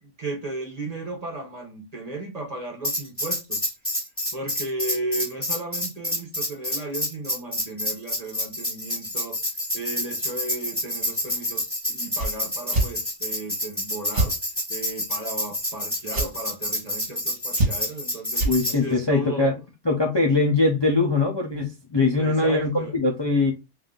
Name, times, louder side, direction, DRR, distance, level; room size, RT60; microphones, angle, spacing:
voice 1, 0.0-3.6 4.3-9.4 9.7-14.4 14.7-18.5 18.7-19.5 22.2-22.9, right 2 dB, 35° right, 1.1 m, -35 dB
Tambourine, 2.8-18.8, equal, 10° left, 1.6 m, -28 dB
sound 1, 12.1-12.3 12.7-12.9 14.1-14.3 16.1-16.3 17.5-18.0 18.3-18.5, right 2 dB, 50° right, 1.5 m, -23 dB
voice 2, 18.4-19.5 19.8-23.5, left 3 dB, 25° left, 0.6 m, -22 dB
3.4 x 2.7 x 3.8 m
omnidirectional pair, 1.3 m